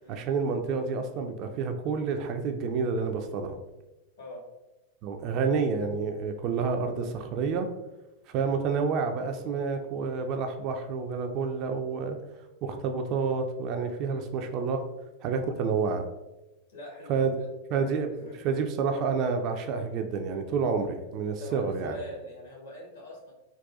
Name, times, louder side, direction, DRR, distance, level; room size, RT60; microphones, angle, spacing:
voice 1, 0.1-3.6 5.0-7.7 8.3-12.2 12.6-14.8 15.2-16.1 17.1-17.3 17.7-18.1 18.4-22.0, right 5 dB, 40° right, 5 dB, 0.3 m, -29 dB
voice 2, 16.7-18.4 21.4-23.3, equal, 65° left, -3 dB, 1.2 m, -44 dB
4.0 x 2.2 x 2.4 m, 1.0 s
figure-of-eight pair, 90°, 0 cm